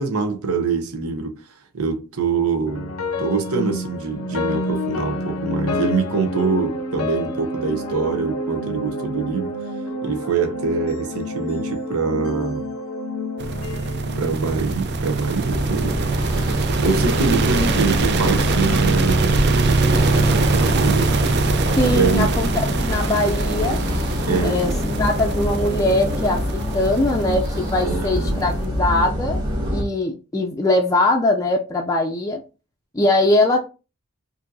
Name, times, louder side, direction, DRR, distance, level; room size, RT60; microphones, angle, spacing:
voice 1, 0.0-1.4 1.7-9.5 10.0-12.7 14.2-16.0 16.8-19.7 20.1-22.3 24.3-24.7 27.8-28.4, right 4 dB, 80° right, 0.8 m, -24 dB
sound 1, 2.7-14.9, left 1 dB, 80° left, 0.6 m, -28 dB
sound 2, 13.4-28.5, right 3 dB, 50° right, 0.5 m, -22 dB
sound 3, 15.5-29.8, left 1 dB, 20° right, 1.7 m, -25 dB
voice 2, 21.8-23.8 24.4-24.7 25.0-29.4 29.7-32.4 32.9-33.7, left 2 dB, 15° left, 0.4 m, -21 dB
4.9 x 2.7 x 2.6 m
head